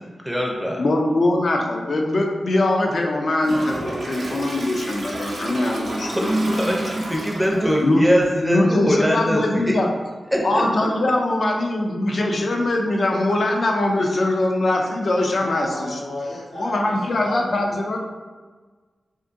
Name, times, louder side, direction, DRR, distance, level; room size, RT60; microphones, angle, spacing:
voice 1, 0.2-0.8 6.2-9.8 10.3-10.9, equal, 5° right, -1 dB, 0.5 m, -22 dB
voice 2, 0.8-6.6 7.8-8.0 8.4-9.9 10.4-16.0 16.6-18.0, left 2 dB, 55° left, 1 dB, 0.4 m, -22 dB
Toilet flush, 3.4-7.8, right 1 dB, 65° right, 0.4 m, -31 dB
voice 3, 15.3-17.8, left 1 dB, 90° left, -12 dB, 1.1 m, -34 dB
2.5 x 2.5 x 2.5 m, 1.4 s
wide cardioid pair, 85°, 0 cm